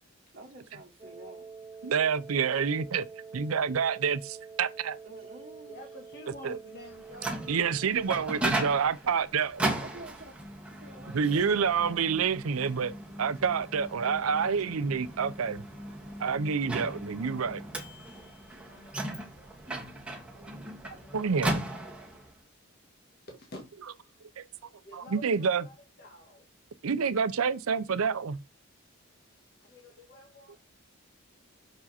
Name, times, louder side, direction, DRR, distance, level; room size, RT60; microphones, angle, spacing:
voice 1, 0.3-1.5 5.0-5.8 9.8-10.3 10.8-12.1, right 2 dB, 45° right, 1.3 m, -49 dB
Wind instrument woodwind instrument, 1.0-8.9, right 5 dB, 30° right, 0.8 m, -47 dB
voice 2, 1.8-3.1 3.3-5.0 6.4-6.6 7.5-9.7 11.1-12.9 13.2-15.6 16.2-17.6 21.1-21.6 24.4-24.5 24.9-25.6 26.8-28.4, right 6 dB, 90° right, 0.5 m, -28 dB
voice 3, 5.7-7.3 18.1-19.6 20.6-21.4 23.3-23.6 24.0-24.2 24.8-26.5 28.7-30.6, left 1 dB, 50° left, 1.6 m, -50 dB
Microwave oven, 6.8-22.3, right 1 dB, 5° right, 1.6 m, -37 dB
6.4 x 4.8 x 4.2 m
head